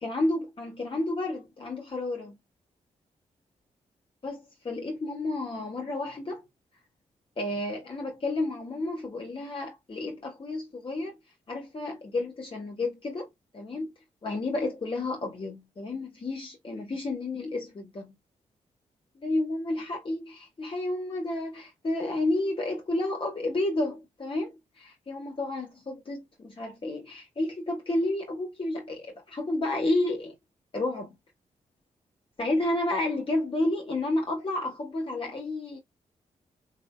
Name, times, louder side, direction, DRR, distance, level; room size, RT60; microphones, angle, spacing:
voice 1, 0.0-2.4 4.2-6.4 7.4-11.2 11.5-13.3 13.5-13.9 14.2-18.1 19.2-30.4 30.7-31.2 32.4-35.8, left 2 dB, 40° left, 1.6 m, -31 dB
3.1 x 2.8 x 2.3 m
cardioid pair, 65°, 13 cm